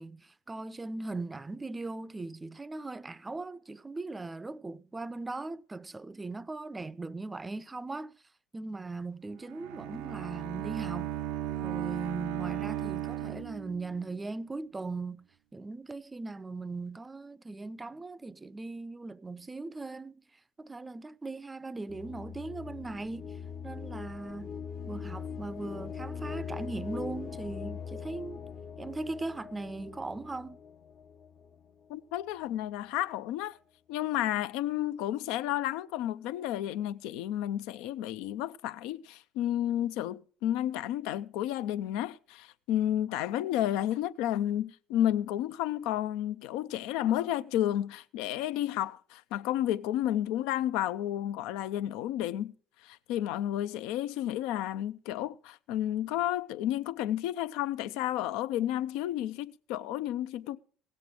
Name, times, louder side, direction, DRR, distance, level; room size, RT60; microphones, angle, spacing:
voice 1, 0.0-8.2 8.5-11.2 11.6-15.3 15.5-20.2 20.6-24.5 24.9-28.4 28.8-30.6, right 3 dB, 20° right, 0.5 m, -39 dB
Bowed string instrument, 9.4-14.1, right 12 dB, 75° right, 0.5 m, -36 dB
sound 1, 21.9-31.7, left 6 dB, 50° left, 0.8 m, -41 dB
voice 2, 31.9-33.6 33.9-52.5 52.8-60.6, left 12 dB, 75° left, 0.4 m, -31 dB
17.0 x 7.7 x 4.8 m
hypercardioid pair, 70°, 0 cm